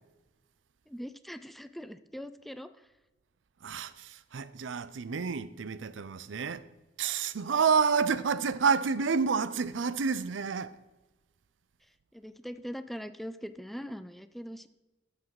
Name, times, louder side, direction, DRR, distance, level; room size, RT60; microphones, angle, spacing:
voice 1, 0.9-2.7 12.1-14.7, equal, ahead, 0.3 m, -41 dB
voice 2, 3.6-6.7 7.0-10.8, right 5 dB, 85° right, 0.5 m, -29 dB
12.0 x 7.3 x 4.7 m
head